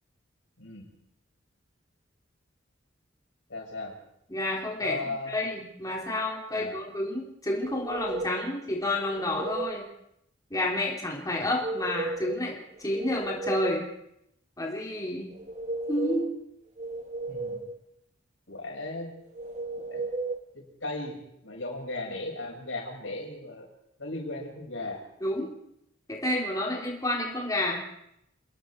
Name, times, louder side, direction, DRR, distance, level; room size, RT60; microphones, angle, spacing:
voice 1, 3.5-3.9 4.8-5.4 6.5-6.8 17.3-17.6 18.5-19.1 19.8-20.0 20.5-23.7 24.0-25.0, left 2 dB, 90° left, 1 dB, 6.8 m, -36 dB
voice 2, 4.3-5.0 5.3-9.9 10.5-13.8 14.6-15.3 15.9-16.3 25.2-25.5 26.1-27.8, left 1 dB, 20° left, -2 dB, 4.1 m, -30 dB
sound 1, 7.6-8.5 9.0-9.8 11.4-12.4 12.8-13.9 15.3-16.3 16.8-17.8 19.4-20.4, right 3 dB, 40° right, 1.8 m, -35 dB
29.0 x 20.5 x 4.8 m, 0.77 s
head